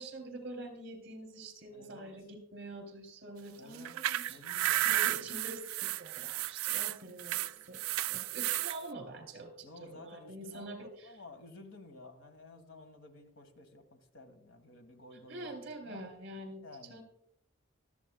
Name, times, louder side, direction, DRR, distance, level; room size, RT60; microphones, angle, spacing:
voice 1, 0.0-4.4 4.8-7.8 8.1-11.1 15.3-16.6 16.9-17.0, right 2 dB, 55° right, 6 dB, 3.2 m, -46 dB
voice 2, 1.7-2.1 3.6-3.9 4.3-5.3 9.6-16.1 16.6-17.0, left 2 dB, 75° left, 7 dB, 1.7 m, -53 dB
sound 1, 3.7-8.8, right 14 dB, 80° right, 0.3 m, -33 dB
24.5 x 8.2 x 2.3 m, 0.72 s
head